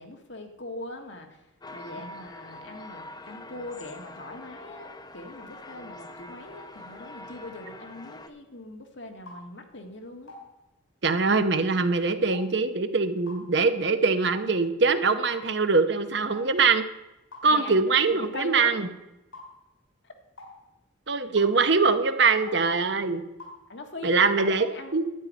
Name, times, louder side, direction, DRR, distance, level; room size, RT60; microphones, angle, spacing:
voice 1, 0.0-1.4 1.7-10.3 17.5-17.8 18.0-18.7 20.0-20.1 23.7-25.0, left 2 dB, 65° left, 4 dB, 1.6 m, -40 dB
sound 1, 1.6-8.3, left 2 dB, 20° left, 0.7 m, -44 dB
sound 2, 9.3-9.4 10.3-10.4 11.3-11.4 12.3-12.5 13.3-13.4 14.3-14.5 15.3-15.4 16.3-16.5 17.3-17.5 18.3-18.5 19.3-19.5 20.4-20.5 21.4-21.5 22.4-22.6 23.4-23.6, left 2 dB, 80° left, 5.2 m, -44 dB
voice 2, 11.0-16.8 17.4-18.9 21.1-23.2 24.0-24.7 24.9-25.1, right 4 dB, 60° right, 10 dB, 0.8 m, -23 dB
12.0 x 9.2 x 5.2 m, 0.95 s
head